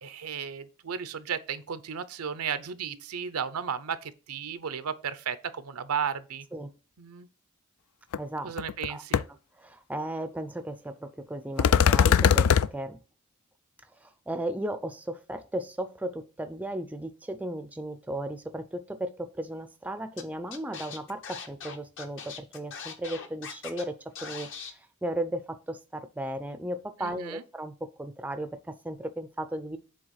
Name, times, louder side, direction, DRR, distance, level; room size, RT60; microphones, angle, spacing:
voice 1, 0.0-6.4 7.0-7.3 8.4-9.2 27.0-27.4, right 7 dB, 80° right, 0.7 m, -34 dB
sound 1, 8.1-8.2 8.6-8.9 9.1-9.2 11.6-12.7, left 7 dB, 80° left, 0.4 m, -20 dB
voice 2, 8.2-8.5 8.9-9.0 9.3-13.0 14.0-24.5 25.0-29.8, right 1 dB, 5° right, 0.5 m, -35 dB
Scratching (performance technique), 20.2-20.3 20.5-23.8 24.2-24.7, left 6 dB, 60° left, 1.1 m, -40 dB
7.7 x 3.4 x 6.4 m
head